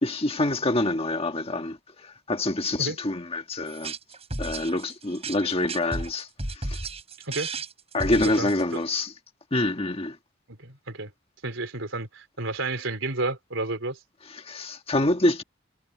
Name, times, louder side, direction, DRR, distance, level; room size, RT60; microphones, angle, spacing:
voice 1, 0.0-3.9 4.4-6.8 7.9-9.1 9.5-10.2 14.3-15.4, left 2 dB, 30° left, 1.7 m, -26 dB
sound 1, 3.7-8.8, right 2 dB, 30° right, 7.4 m, -34 dB
voice 2, 8.1-8.8 10.5-11.1 11.4-14.0, right 2 dB, 75° right, 3.9 m, -31 dB
head